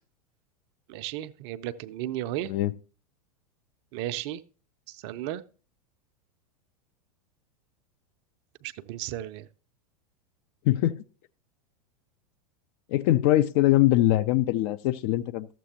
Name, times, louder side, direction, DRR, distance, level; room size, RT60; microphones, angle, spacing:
voice 1, 0.9-2.5 3.9-4.4 4.9-5.4 8.6-9.5, right 13 dB, 45° right, 0.5 m, -34 dB
voice 2, 2.4-2.8 10.6-11.0 12.9-15.5, left 15 dB, 45° left, 0.4 m, -22 dB
13.0 x 7.5 x 2.8 m
figure-of-eight pair, 90°, 19 cm